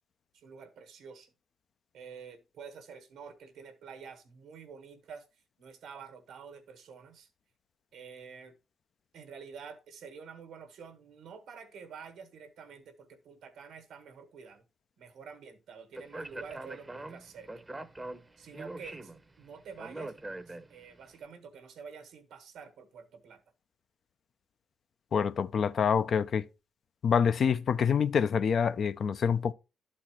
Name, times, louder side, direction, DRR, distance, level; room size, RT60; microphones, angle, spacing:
voice 1, 0.3-1.3 1.9-7.3 7.9-8.6 9.1-14.6 15.0-17.5 18.4-20.1 20.5-23.4, right 6 dB, 80° right, 1.3 m, -48 dB
Speech, 15.9-21.0, right 2 dB, 20° right, 0.7 m, -43 dB
voice 2, 25.1-26.5 27.0-29.5, left 7 dB, 60° left, 0.4 m, -26 dB
11.5 x 4.2 x 3.0 m
supercardioid pair, 60°, 0 cm